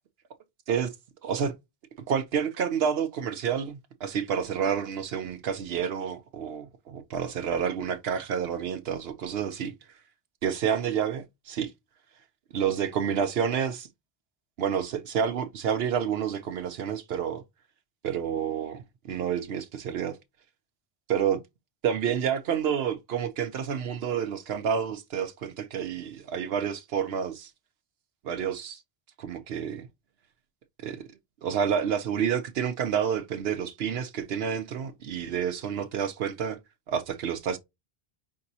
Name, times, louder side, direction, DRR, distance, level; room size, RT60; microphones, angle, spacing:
voice 1, 1.2-1.5 2.1-9.7 10.4-11.7 12.5-13.9 14.6-17.4 18.0-18.8 19.1-20.2 21.1-21.4 21.8-27.5 28.2-28.8 29.2-29.9 30.8-31.0 31.4-36.6 36.9-37.6, right 8 dB, 75° right, 0.8 m, -29 dB
5.2 x 2.8 x 2.7 m
omnidirectional pair, 1.0 m